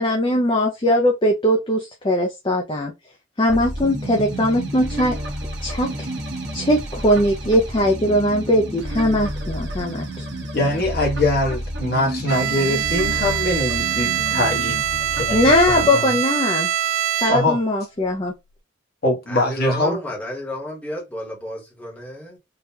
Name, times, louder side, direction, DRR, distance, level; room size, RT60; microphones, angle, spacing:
voice 1, 0.0-2.9 3.4-5.2 5.6-6.1 6.5-10.2 15.3-16.7 17.2-18.3, left 1 dB, 25° left, 0.5 m, -20 dB
sound 1, 3.5-15.9, right 1 dB, 55° right, 1.0 m, -30 dB
voice 2, 10.5-14.8 15.1-16.0 17.1-17.6 19.0-20.0, left 1 dB, 50° left, 1.3 m, -22 dB
Bowed string instrument, 12.3-17.7, right 11 dB, 90° right, 0.3 m, -24 dB
voice 3, 19.3-22.4, left 1 dB, 5° left, 1.0 m, -32 dB
3.8 x 2.3 x 2.7 m
head